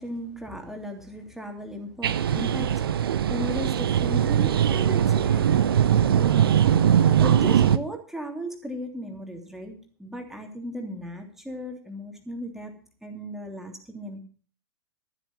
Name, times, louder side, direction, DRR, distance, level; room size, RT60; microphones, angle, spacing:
voice 1, 0.0-5.5 6.1-6.6 7.2-12.7 13.0-14.2, right 1 dB, 5° right, 3 dB, 3.0 m, -36 dB
sound 1, 2.0-7.8, right 9 dB, 60° right, 0.9 m, -21 dB
13.5 x 8.3 x 7.3 m, 0.42 s
figure-of-eight pair, 105°, 13 cm